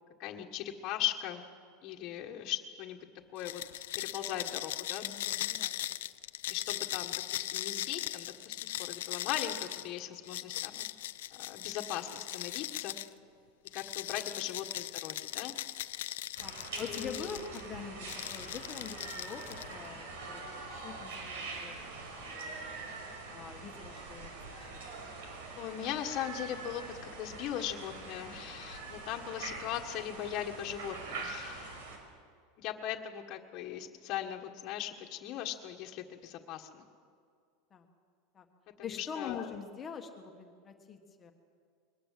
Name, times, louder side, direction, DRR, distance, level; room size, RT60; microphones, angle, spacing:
voice 1, 0.2-1.4 1.8-3.0 3.3-5.0 6.5-10.9 11.3-12.9 13.7-15.5 16.7-17.3 25.6-31.7 32.6-36.8 38.9-39.6, left 11 dB, 40° left, 2 dB, 1.6 m, -39 dB
sound 1, 3.4-13.1 13.7-17.6 18.0-19.9, left 14 dB, 90° left, 0.6 m, -39 dB
voice 2, 5.0-5.8 16.4-22.7 23.3-24.3 24.6-24.9 37.7-37.8 38.3-38.4 38.8-41.3, left 6 dB, 20° left, 4 dB, 1.6 m, -45 dB
sound 2, 16.4-32.0, right 3 dB, 80° right, 5.6 m, -44 dB
22.5 x 19.5 x 7.7 m, 2.2 s
supercardioid pair, 160°, 0 cm